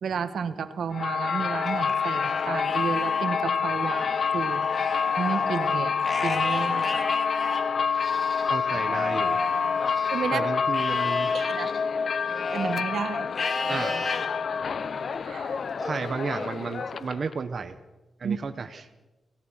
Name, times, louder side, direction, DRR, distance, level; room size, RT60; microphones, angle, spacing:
voice 1, 0.0-4.6 5.2-6.9 10.1-10.5 11.3-11.7 12.5-13.3 15.3-15.6 18.2-18.4, right 6 dB, 80° right, 11 dB, 1.3 m, -31 dB
sound 1, 0.9-17.3, left 6 dB, 60° left, 0.7 m, -27 dB
Livestock farm animals working animals, 1.7-3.3 3.7-10.3 10.7-12.8 13.3-14.3 14.8-15.2 15.8-16.9, left 3 dB, 35° left, 2.5 m, -35 dB
voice 2, 6.5-7.1 8.5-9.4 10.3-11.3 13.7-14.0 15.8-17.7 18.2-18.9, right 5 dB, 50° right, 8 dB, 1.0 m, -33 dB
29.0 x 17.5 x 5.7 m, 1.1 s
wide cardioid pair, 120°, 0 cm